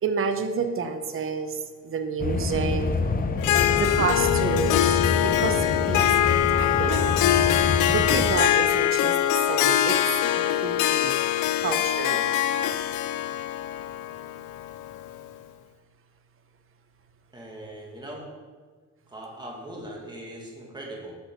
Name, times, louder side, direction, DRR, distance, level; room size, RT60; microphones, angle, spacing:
voice 1, 0.0-1.6 1.8-2.9 3.8-6.1 6.5-7.2 7.9-9.1 9.5-10.0 10.4-11.1 11.6-12.3, right 5 dB, 45° right, 7 dB, 0.8 m, -29 dB
sound 1, 2.2-8.4, left 3 dB, 30° left, 0.6 m, -27 dB
Harp, 3.4-15.2, left 12 dB, 85° left, 0.5 m, -23 dB
voice 2, 17.3-18.3 19.1-21.1, right 1 dB, 15° right, -2 dB, 2.0 m, -40 dB
7.1 x 6.2 x 4.6 m, 1.5 s
cardioid pair, 90°, 30 cm